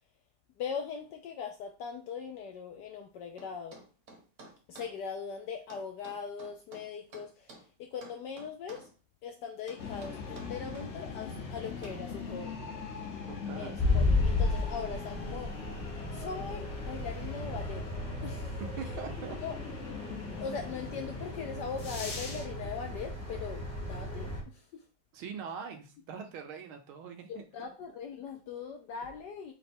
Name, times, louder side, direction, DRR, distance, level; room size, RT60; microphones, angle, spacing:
voice 1, 0.6-3.8 4.7-8.9 9.2-12.6 13.5-15.6 16.1-17.9 18.2-18.9 19.4-19.5 20.4-24.8 27.3-29.5, left 6 dB, 75° left, 4 dB, 1.0 m, -40 dB
sound 1, 3.4-4.9 5.7-7.7 8.0-8.9 9.7-10.9 11.8-12.1, right 3 dB, 45° right, 1.1 m, -52 dB
sound 2, 9.8-22.5, left 4 dB, 60° left, 0.7 m, -41 dB
voice 2, 13.3-13.7 18.8-19.4 25.1-27.4, right 6 dB, 80° right, 4 dB, 1.6 m, -42 dB
sound 3, 13.8-24.4, left 2 dB, 15° left, 0.4 m, -34 dB
4.8 x 2.2 x 4.2 m, 0.33 s
omnidirectional pair, 2.3 m